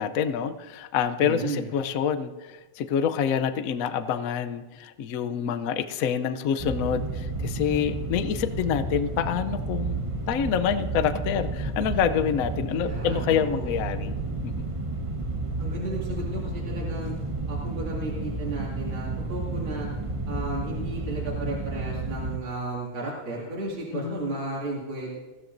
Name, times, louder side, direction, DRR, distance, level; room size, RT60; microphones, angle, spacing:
voice 1, 0.0-10.0 10.3-14.1 14.4-14.7 23.9-24.4, left 8 dB, 90° left, 11 dB, 0.7 m, -27 dB
voice 2, 1.2-1.6 12.7-13.7 15.6-17.1 17.5-19.9 20.3-25.2, right 2 dB, 70° right, -5 dB, 3.1 m, -34 dB
sound 1, 6.6-22.4, right 2 dB, 45° right, 0.4 m, -31 dB
21.0 x 16.0 x 2.6 m, 1.2 s
omnidirectional pair, 2.3 m